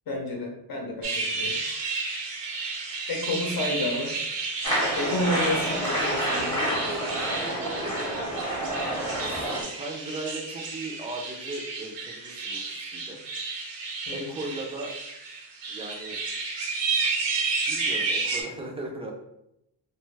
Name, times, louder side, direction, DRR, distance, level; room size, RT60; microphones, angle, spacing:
voice 1, 0.1-1.6 3.1-4.2 4.9-7.0 7.2-7.3 14.1-14.4, left 1 dB, 55° left, 1 dB, 0.7 m, -30 dB
sound 1, 1.0-18.4, right 4 dB, 85° right, 0.7 m, -32 dB
sound 2, 4.6-9.6, right 1 dB, 10° left, 0.7 m, -28 dB
voice 2, 9.2-13.2 14.1-14.9 15.7-16.2 17.7-19.1, right 2 dB, 15° right, 0 dB, 0.4 m, -37 dB
2.4 x 2.2 x 3.2 m, 0.83 s
wide cardioid pair, 150°, 42 cm